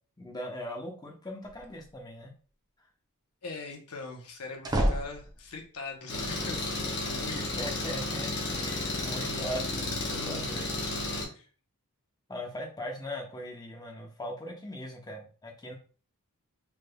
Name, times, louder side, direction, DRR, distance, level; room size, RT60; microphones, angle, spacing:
voice 1, 0.2-2.3 7.3-11.4 12.3-15.7, equal, 20° left, 1 dB, 0.7 m, -40 dB
sound 1, 1.4-2.0 4.2-5.7, right 1 dB, 15° right, 0.4 m, -30 dB
voice 2, 3.4-7.6 11.4-11.5, left 3 dB, 80° left, 2 dB, 0.8 m, -41 dB
Engine, 6.1-11.2, left 2 dB, 50° left, 1.0 m, -33 dB
3.4 x 3.2 x 2.3 m, 0.40 s
head